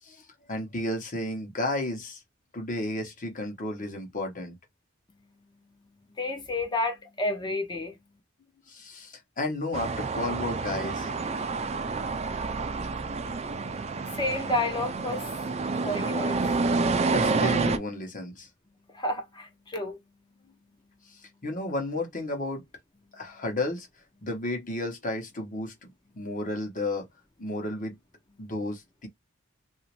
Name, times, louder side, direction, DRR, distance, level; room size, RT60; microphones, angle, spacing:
voice 1, 0.0-2.2 2.5-4.6 8.7-11.1 17.1-18.5 21.0-22.6 23.1-23.9 24.2-27.1 27.4-28.0 28.4-29.1, left 2 dB, 40° left, 1.2 m, -33 dB
voice 2, 5.2-8.0 13.0-16.6 18.9-20.0 28.4-28.5, left 2 dB, 20° left, 0.7 m, -32 dB
sound 1, 9.7-17.8, right 3 dB, 30° right, 0.4 m, -28 dB
3.0 x 2.7 x 3.0 m
head